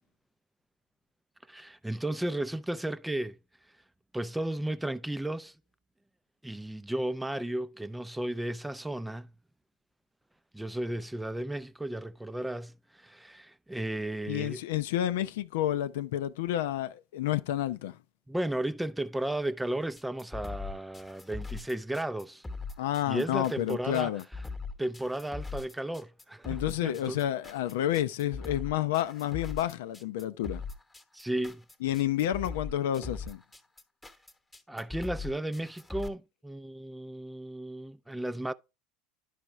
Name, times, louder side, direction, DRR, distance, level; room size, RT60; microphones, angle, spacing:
voice 1, 1.5-3.4 4.1-5.6 6.4-9.3 10.5-14.6 18.3-22.4 23.1-24.1 24.8-27.2 31.1-31.6 34.7-38.5, right 1 dB, 5° right, 0.4 m, -34 dB
voice 2, 14.3-18.0 22.8-24.2 26.5-30.6 31.8-33.4, left 12 dB, 70° left, 0.5 m, -30 dB
sound 1, 20.0-36.1, left 4 dB, 10° left, 1.1 m, -40 dB
11.0 x 5.0 x 3.2 m
hypercardioid pair, 75°, 0 cm